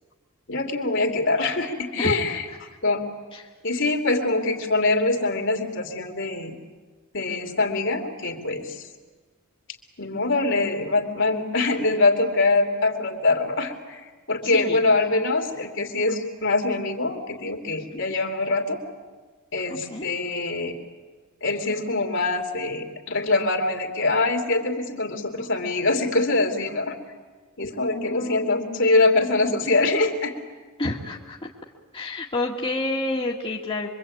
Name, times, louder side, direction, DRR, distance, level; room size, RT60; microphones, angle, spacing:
voice 1, 0.5-2.4 2.8-3.1 3.6-6.6 7.1-8.9 10.0-18.8 19.5-20.8 21.4-26.9 27.6-30.3, left 3 dB, 60° left, 3 dB, 3.1 m, -24 dB
voice 2, 2.0-2.4 3.3-3.4 14.4-14.9 17.9-18.0 19.7-20.1 27.9-28.8 30.8-31.5 31.9-33.9, left 2 dB, 25° left, -2 dB, 2.0 m, -30 dB
25.5 x 24.0 x 8.8 m, 1.3 s
head